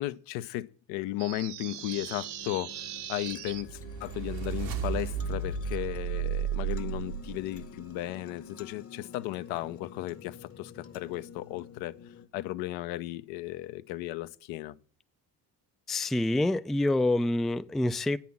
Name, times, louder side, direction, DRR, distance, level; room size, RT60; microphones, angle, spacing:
voice 1, 0.0-11.9 12.3-14.7, left 16 dB, 70° left, 0.8 m, -35 dB
sound 1, 1.2-3.6, right 11 dB, 55° right, 0.9 m, -40 dB
sound 2, 1.7-12.3, left 6 dB, 30° left, 1.0 m, -49 dB
sound 3, 3.4-7.7, right 7 dB, 80° right, 2.0 m, -33 dB
voice 2, 15.9-18.2, left 1 dB, ahead, 0.4 m, -26 dB
9.3 x 5.8 x 7.2 m
hypercardioid pair, 65°, 48 cm